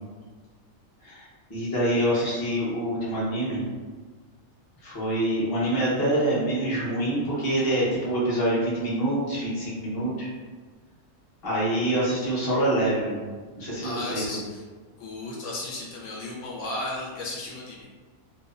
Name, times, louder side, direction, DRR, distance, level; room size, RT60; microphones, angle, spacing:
voice 1, 1.0-3.7 4.8-10.3 11.4-13.2 13.6-14.4, right 1 dB, 25° left, -8 dB, 0.5 m, -26 dB
voice 2, 13.8-14.6 15.0-17.8, left 2 dB, 70° left, -3 dB, 0.9 m, -34 dB
2.7 x 2.1 x 2.4 m, 1.4 s
omnidirectional pair, 1.4 m